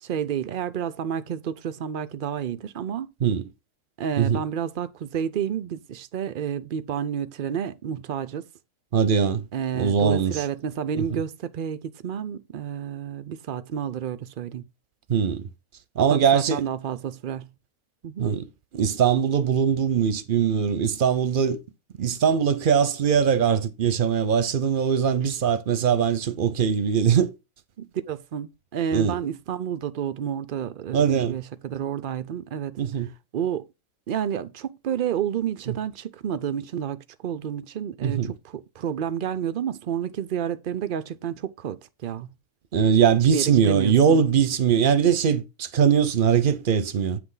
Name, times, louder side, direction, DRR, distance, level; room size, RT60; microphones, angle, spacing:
voice 1, 0.0-3.1 4.0-8.4 9.5-14.7 16.1-17.5 18.0-18.3 27.8-32.8 33.3-33.7 34.1-42.3 43.3-44.3, right 8 dB, 85° right, 0.4 m, -30 dB
voice 2, 8.9-9.4 9.7-10.4 10.9-11.2 15.1-15.5 16.0-16.6 18.2-18.5 18.7-21.6 22.0-27.3 28.9-29.2 30.9-31.4 32.8-33.1 35.7-35.8 38.0-38.3 42.7-47.2, right 7 dB, 50° right, 0.6 m, -21 dB
8.2 x 6.0 x 3.8 m
omnidirectional pair, 1.6 m